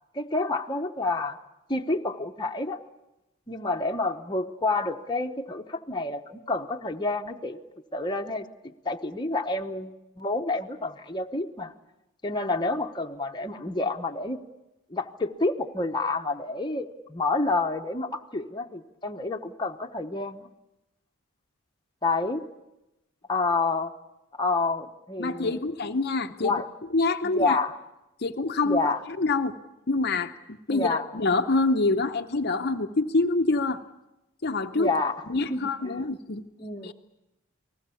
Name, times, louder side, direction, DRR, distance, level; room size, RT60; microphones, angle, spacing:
voice 1, 0.1-1.4 1.7-2.8 3.5-7.6 7.9-11.7 12.2-14.4 14.9-20.5 22.0-22.4 23.3-23.9 24.3-25.6 26.4-26.7 27.2-27.7 28.7-29.0 30.7-31.1 34.7-36.0 36.6-36.9, left 3 dB, 20° left, 3 dB, 1.0 m, -29 dB
voice 2, 25.2-26.5 26.9-27.6 28.2-28.8 29.2-29.5 29.9-33.8 34.4-34.9 35.3-36.4 36.8-36.9, left 3 dB, 50° left, 6 dB, 0.8 m, -26 dB
29.0 x 19.5 x 7.0 m, 0.96 s
head